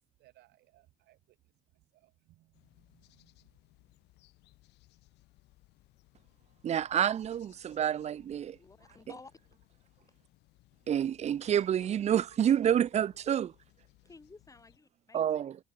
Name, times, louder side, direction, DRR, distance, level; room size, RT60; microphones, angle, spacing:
voice 1, 0.2-4.0, right 17 dB, 80° right, 4.0 m, -66 dB
sound 1, 2.5-14.8, left 18 dB, 85° left, 3.1 m, -64 dB
voice 2, 6.6-8.6 10.9-13.5 15.1-15.6, right 9 dB, 40° right, 0.6 m, -28 dB
voice 3, 8.6-9.3 11.5-11.9 12.5-12.6 14.0-15.5, left 3 dB, 20° left, 4.9 m, -54 dB
cardioid pair, 110°, 17 cm